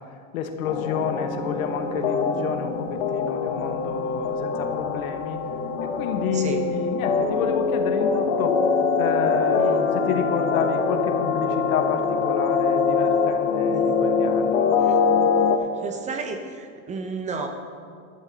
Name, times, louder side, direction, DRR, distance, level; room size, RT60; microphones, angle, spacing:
voice 1, 0.3-5.4 5.8-8.6 9.0-14.7, left 7 dB, 80° left, 6 dB, 1.4 m, -29 dB
sound 1, 0.6-15.6, left 5 dB, 65° left, 1.2 m, -23 dB
voice 2, 6.3-6.6 9.6-9.9 13.7-14.0 14.8-15.0 15.6-17.5, right 4 dB, 15° right, 5 dB, 0.6 m, -33 dB
11.5 x 10.0 x 4.0 m, 2.1 s
supercardioid pair, 145°, 41 cm